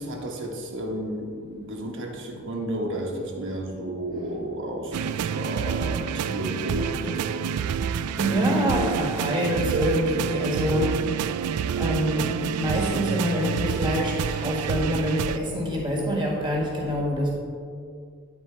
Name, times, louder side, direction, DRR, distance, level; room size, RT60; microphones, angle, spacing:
voice 1, 0.0-7.7, right 1 dB, 60° right, 1 dB, 1.1 m, -32 dB
sound 1, 4.9-15.4, right 7 dB, 85° right, 0.3 m, -28 dB
voice 2, 8.2-11.1 11.7-17.3, equal, 20° right, -3 dB, 1.6 m, -26 dB
9.9 x 4.4 x 4.4 m, 2.2 s
head